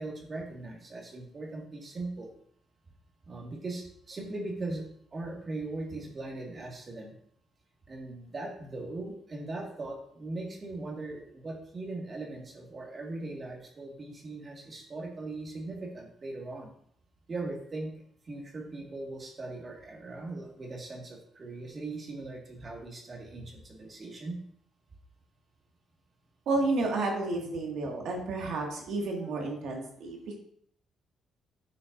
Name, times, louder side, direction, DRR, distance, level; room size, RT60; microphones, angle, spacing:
voice 1, 0.0-2.3 3.3-7.2 7.9-16.7 17.3-17.9 18.2-24.4, right 2 dB, 35° right, 0 dB, 1.8 m, -39 dB
voice 2, 26.5-30.4, right 2 dB, 75° right, 1 dB, 1.9 m, -31 dB
10.5 x 5.9 x 2.6 m, 0.65 s
cardioid pair, 90°, 0 cm